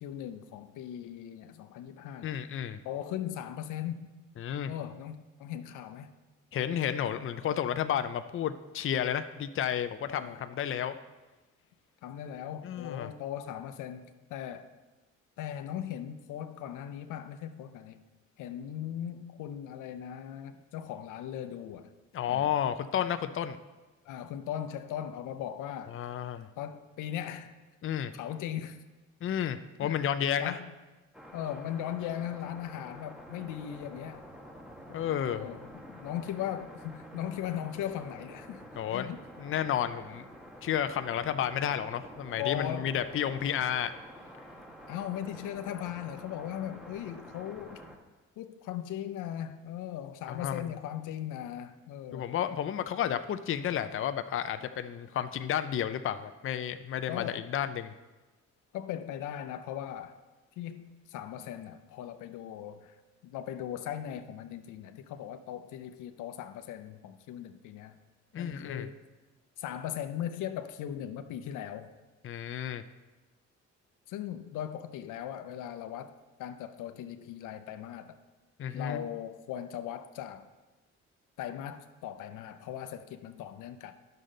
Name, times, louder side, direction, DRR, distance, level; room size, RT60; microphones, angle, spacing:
voice 1, 0.0-2.3 2.8-4.1 4.7-6.1 10.1-10.4 12.0-14.7 15.4-18.0 18.4-21.9 22.3-22.5 24.0-26.0 26.6-27.5 28.1-28.8 29.8-30.1 30.4-30.7 31.3-34.3 35.3-39.2 42.4-42.9 44.9-47.8 48.4-52.3 57.1-57.5 58.7-60.2 60.6-63.0 63.2-68.0 68.4-68.9 69.6-71.9 74.1-76.1 76.4-78.2 78.7-80.5 81.4-83.9, left 10 dB, 85° left, 10 dB, 0.6 m, -38 dB
voice 2, 2.2-2.8 4.4-4.7 6.5-10.9 12.6-13.1 22.1-23.6 25.9-26.5 27.8-28.1 29.2-30.6 34.9-35.5 38.8-39.1 39.4-40.2 40.6-43.9 50.3-50.7 52.1-57.9 68.3-68.9 72.2-72.8 78.6-79.0, left 9 dB, 45° left, 10 dB, 0.5 m, -32 dB
sound 1, 31.1-48.0, equal, 5° right, 1.2 m, -49 dB
10.5 x 6.6 x 3.8 m, 1.2 s
cardioid pair, 90°, 30 cm